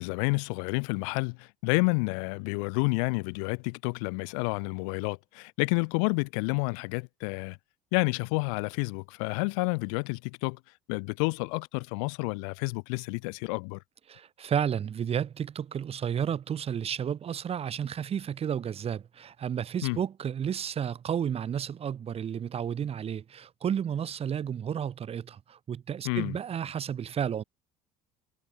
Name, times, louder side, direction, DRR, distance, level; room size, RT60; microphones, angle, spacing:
voice 1, 0.0-7.6 7.9-10.6 10.9-13.8 19.8-20.0 26.0-26.4, left 36 dB, 85° left, 0.7 m, -29 dB
voice 2, 14.1-27.4, right 8 dB, 35° right, 1.0 m, -32 dB
supercardioid pair, 95°, 17 cm